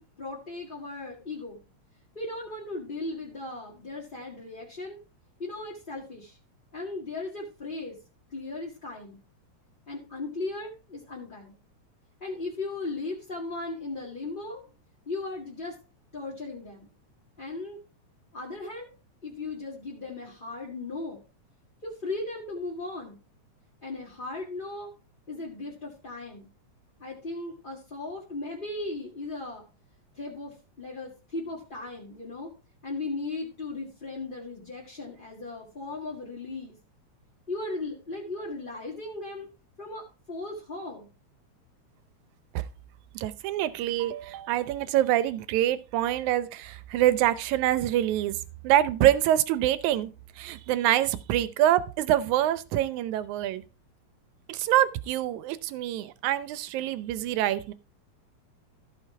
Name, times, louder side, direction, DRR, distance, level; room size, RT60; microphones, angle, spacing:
voice 1, 0.0-1.6 2.1-5.0 5.4-6.4 6.7-8.0 8.3-9.2 9.9-11.5 12.2-14.6 15.0-15.8 16.1-16.9 17.4-17.8 18.3-18.9 19.2-21.2 21.8-23.2 23.8-24.9 25.3-26.5 27.0-29.6 30.1-32.5 32.8-36.8 37.5-39.5 39.8-41.1, left 2 dB, 20° left, -4 dB, 1.6 m, -37 dB
voice 2, 43.2-48.4 48.6-50.1 50.4-53.6 54.5-57.7, right 13 dB, 85° right, 15 dB, 2.1 m, -25 dB
14.0 x 5.2 x 4.7 m, 0.33 s
omnidirectional pair, 3.4 m